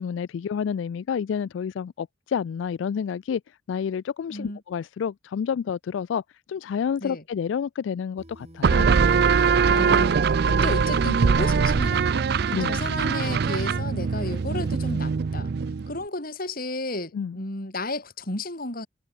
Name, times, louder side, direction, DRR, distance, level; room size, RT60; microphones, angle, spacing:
voice 1, 0.0-3.4 3.7-6.2 6.5-8.9 12.5-12.8 17.1-17.4, left 7 dB, 75° left, 0.3 m, -29 dB
sound 1, 8.2-15.0, right 1 dB, 35° right, 2.8 m, -50 dB
sound 2, 8.6-16.0, right 5 dB, 55° right, 0.4 m, -22 dB
voice 2, 9.7-12.3 12.7-15.5 15.9-18.9, left 2 dB, 50° left, 4.4 m, -33 dB
head